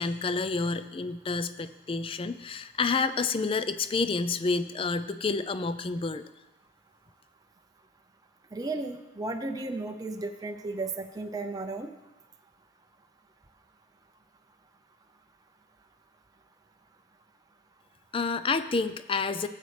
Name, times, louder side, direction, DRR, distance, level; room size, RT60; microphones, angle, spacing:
voice 1, 0.0-6.2 18.1-19.5, left 4 dB, 30° left, 12 dB, 0.4 m, -29 dB
voice 2, 8.5-11.9, right 2 dB, 20° right, 5 dB, 0.5 m, -34 dB
15.0 x 8.1 x 3.3 m, 1.0 s
head